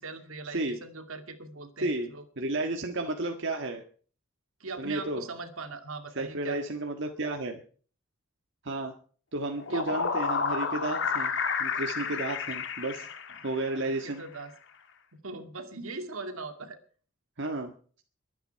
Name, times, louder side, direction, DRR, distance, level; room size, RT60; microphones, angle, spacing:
voice 1, 0.0-2.2 4.6-6.7 9.7-10.0 12.1-12.2 13.8-14.5 15.1-16.8, right 3 dB, 75° right, 7 dB, 2.3 m, -40 dB
voice 2, 2.4-3.8 4.8-5.2 6.2-7.6 8.6-8.9 9.3-11.3 11.6-13.1 13.4-14.2 17.4-17.7, right 2 dB, 55° right, 3 dB, 1.6 m, -32 dB
sound 1, 9.4-13.9, left 5 dB, 55° left, 1.9 m, -31 dB
22.5 x 9.4 x 4.7 m, 0.42 s
head